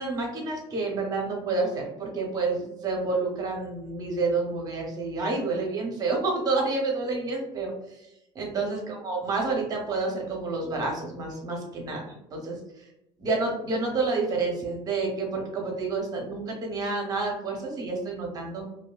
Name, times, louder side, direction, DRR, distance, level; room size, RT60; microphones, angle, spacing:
voice 1, 0.0-7.7 8.3-12.0 12.3-12.6 13.2-18.6, right 3 dB, 25° right, 0 dB, 0.7 m, -29 dB
2.7 x 2.6 x 2.2 m, 0.84 s
cardioid pair, 155°, 14 cm